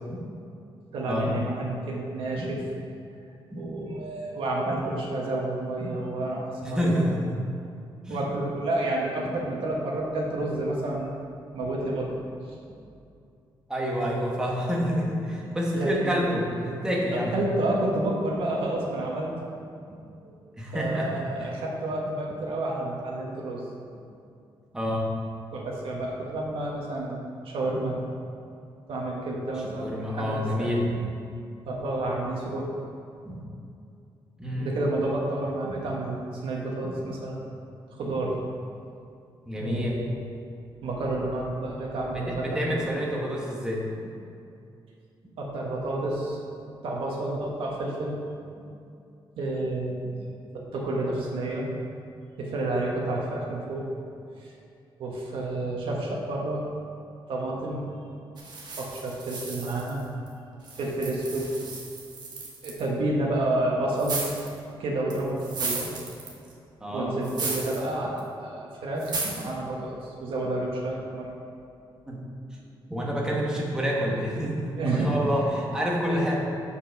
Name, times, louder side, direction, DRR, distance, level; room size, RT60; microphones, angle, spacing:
voice 1, 0.9-2.6 3.5-7.1 8.1-11.1 11.5-12.2 15.4-16.2 17.1-19.3 20.2-20.3 20.7-23.6 25.5-28.0 28.9-30.7 31.6-32.7 34.6-37.4 37.9-38.3 39.6-40.2 40.8-43.0 45.4-46.4 46.8-48.2 49.4-50.1 50.5-51.7 52.4-53.9 54.4-54.5 55.0-56.7 57.3-57.9 58.8-60.0 60.8-61.5 62.6-64.3 64.8-65.9 66.9-71.3 74.8-75.2 76.1-76.4, right 2 dB, 80° right, -3 dB, 1.2 m, -30 dB
voice 2, 3.5-3.9 4.7-4.8 5.8-6.0 6.6-7.4 8.1-8.2 13.7-17.4 19.9-20.0 20.6-21.5 24.7-25.1 29.6-31.0 33.2-33.4 34.4-34.8 35.6-35.8 36.8-37.0 39.5-40.0 42.1-43.9 66.8-67.2 69.2-69.3 72.1-72.2 72.9-76.4, equal, 10° right, -3 dB, 1.0 m, -28 dB
sound 1, 58.4-60.3 60.6-62.8 64.0-64.6 65.1-66.5 67.2-67.9 68.2-68.3 69.0-69.5, right 3 dB, 50° right, 1.3 m, -34 dB
6.8 x 5.3 x 5.3 m, 2.5 s
wide cardioid pair, 170°, 9 cm